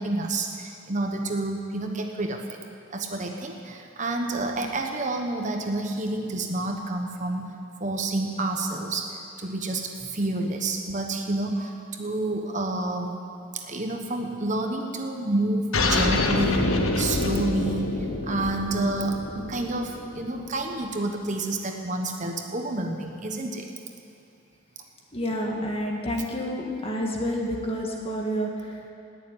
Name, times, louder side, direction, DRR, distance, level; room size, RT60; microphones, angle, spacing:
voice 1, 0.0-2.6 2.9-7.5 7.8-13.2 13.5-23.7, right 2 dB, 35° right, 3 dB, 1.1 m, -29 dB
sound 1, 15.7-20.8, left 2 dB, 80° left, 1.3 m, -27 dB
voice 2, 25.1-28.9, equal, 30° left, 0 dB, 1.9 m, -29 dB
18.0 x 7.2 x 9.7 m, 2.7 s
head